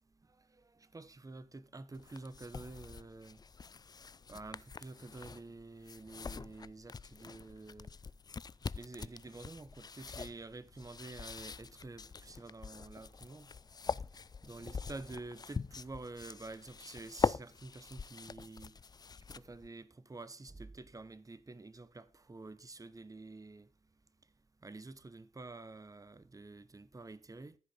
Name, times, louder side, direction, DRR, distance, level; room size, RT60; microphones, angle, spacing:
voice 1, 0.2-3.4 4.3-7.9 8.7-13.5 14.4-18.8 19.3-23.7 24.6-27.6, right 3 dB, 25° right, 1.0 m, -49 dB
sound 1, 1.9-19.7, left 5 dB, 25° left, 0.4 m, -43 dB
14.0 x 5.2 x 5.2 m
supercardioid pair, 50°, 15 cm